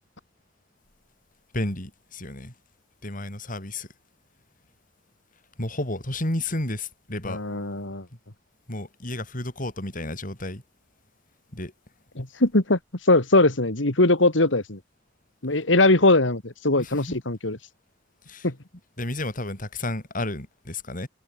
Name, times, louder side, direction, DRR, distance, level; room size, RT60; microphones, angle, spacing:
voice 1, 1.5-2.5 3.0-3.9 5.6-7.4 8.7-10.6 11.5-11.7 16.8-17.2 18.3-18.5 19.0-21.1, left 1 dB, 45° left, 6.2 m, -31 dB
voice 2, 7.3-8.1 12.2-12.8 13.1-14.8 15.4-17.6 18.4-18.5, left 2 dB, 80° left, 2.6 m, -21 dB
head